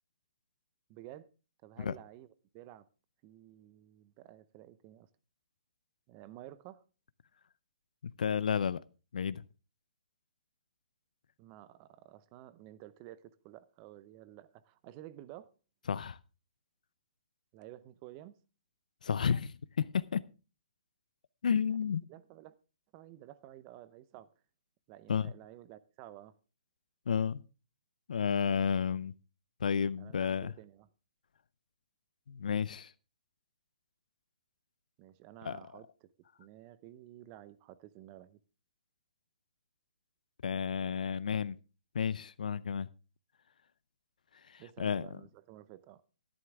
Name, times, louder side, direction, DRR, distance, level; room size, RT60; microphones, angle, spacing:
voice 1, 0.9-1.3 1.6-2.9 3.2-5.1 6.1-6.8 11.4-15.5 17.5-18.4 21.7-21.8 22.1-22.5 22.9-24.3 24.9-26.3 30.0-30.9 35.0-36.1 36.4-38.4 44.6-46.0, right 14 dB, 25° right, 0.6 m, -52 dB
voice 2, 8.0-8.8 9.1-9.4 15.9-16.2 19.0-20.2 21.4-22.0 25.1-25.3 27.1-27.4 28.1-29.1 29.6-30.5 32.3-32.9 35.4-35.6 40.4-41.6 41.9-42.9 44.5-45.1, left 7 dB, 75° left, 0.6 m, -31 dB
12.5 x 11.0 x 3.5 m
hypercardioid pair, 160°, 4 cm